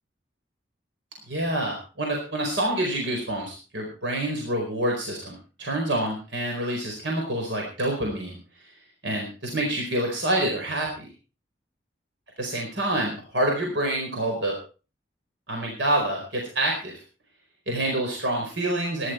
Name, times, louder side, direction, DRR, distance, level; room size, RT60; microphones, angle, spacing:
voice 1, 1.3-8.7 9.0-11.0 12.4-14.5 15.5-16.9 17.7-19.1, right 1 dB, 75° right, 0 dB, 4.6 m, -27 dB
18.0 x 11.5 x 4.5 m, 0.35 s
head